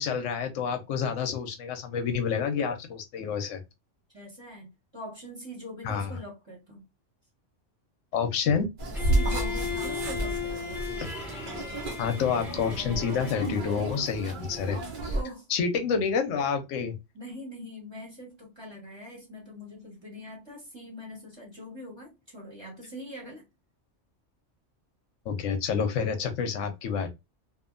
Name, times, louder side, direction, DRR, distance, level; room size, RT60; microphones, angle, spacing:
voice 1, 0.0-3.6 5.8-6.1 8.1-8.7 12.0-15.1 15.5-16.9 25.3-27.1, left 6 dB, 85° left, 0.9 m, -28 dB
voice 2, 4.1-6.9 9.1-10.8 15.1-15.5 17.1-23.4, equal, 25° right, 1.1 m, -43 dB
sound 1, 8.8-15.2, right 1 dB, 50° right, 0.7 m, -32 dB
Bowed string instrument, 8.9-13.9, left 6 dB, ahead, 0.6 m, -36 dB
2.8 x 2.4 x 2.4 m
omnidirectional pair, 1.3 m